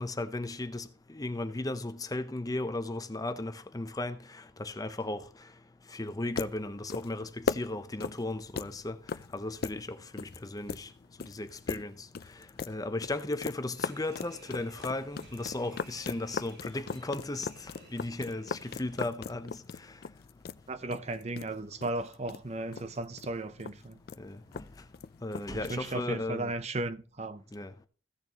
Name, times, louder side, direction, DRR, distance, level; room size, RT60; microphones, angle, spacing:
voice 1, 0.0-4.2 4.6-5.2 5.9-9.0 9.3-10.9 11.2-11.9 12.7-17.5 17.9-19.6 24.2-24.6 25.2-26.5 27.5-27.9, left 2 dB, 20° left, 0.7 m, -36 dB
sound 1, 6.1-26.0, left 5 dB, 60° left, 0.4 m, -40 dB
sound 2, 13.7-19.0, right 2 dB, 90° right, 6.1 m, -56 dB
voice 2, 20.7-23.9 25.5-27.4, right 2 dB, 40° right, 0.7 m, -35 dB
15.5 x 6.6 x 2.9 m
head